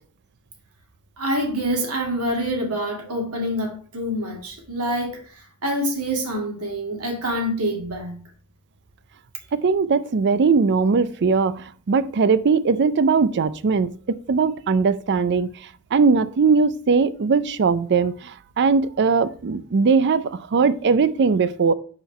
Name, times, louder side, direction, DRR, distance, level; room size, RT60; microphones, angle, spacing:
voice 1, 1.2-5.2 5.6-8.2, equal, 85° right, 2.0 m, -26 dB
voice 2, 9.5-13.9 14.3-15.5 15.9-21.7, right 5 dB, 50° right, 0.5 m, -20 dB
5.7 x 4.5 x 5.4 m
head